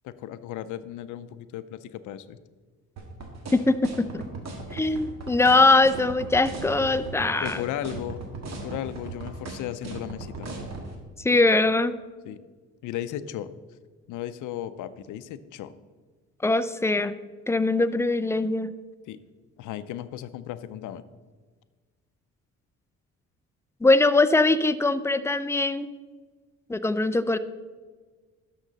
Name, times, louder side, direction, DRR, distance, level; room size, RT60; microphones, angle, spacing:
voice 1, 0.0-2.4 7.4-8.2 8.6-10.5 12.3-12.4 12.8-13.5 14.1-15.7 19.1-19.2 19.6-21.0, left 11 dB, 80° left, 13 dB, 0.5 m, -35 dB
sound 1, 3.0-10.9, right 3 dB, 60° right, 1.7 m, -37 dB
voice 2, 3.5-4.2 4.7-7.6 11.2-11.9 16.4-17.2 17.5-18.7 23.8-25.9 26.7-27.4, left 2 dB, 10° left, 12 dB, 0.4 m, -22 dB
11.5 x 6.6 x 3.9 m, 1.4 s
cardioid pair, 90°, 30 cm